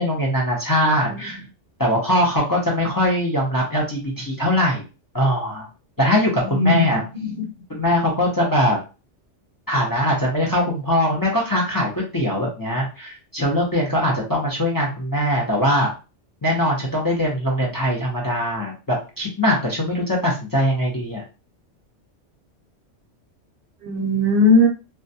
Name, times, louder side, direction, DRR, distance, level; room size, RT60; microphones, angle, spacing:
voice 1, 0.0-1.4 1.8-4.8 5.1-5.7 6.0-7.0 7.7-8.8 9.7-15.9 16.4-21.2, equal, 25° left, -3 dB, 0.4 m, -21 dB
voice 2, 1.0-1.4 6.4-6.8 7.1-7.4 23.8-24.7, left 2 dB, 60° right, 2 dB, 0.7 m, -19 dB
2.2 x 2.2 x 2.6 m, 0.31 s
omnidirectional pair, 1.2 m